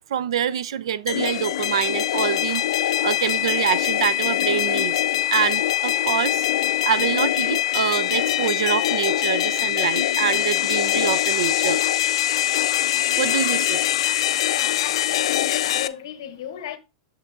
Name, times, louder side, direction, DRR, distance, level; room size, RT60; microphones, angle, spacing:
voice 1, 0.1-5.0 5.3-6.5 6.8-11.8 13.1-13.8, right 9 dB, 75° right, 0.4 m, -25 dB
sound 1, 1.1-15.9, left 13 dB, 70° left, 0.3 m, -23 dB
voice 2, 14.4-16.8, left 10 dB, 55° left, 0.8 m, -35 dB
6.5 x 6.0 x 2.4 m
supercardioid pair, 180°, 3 cm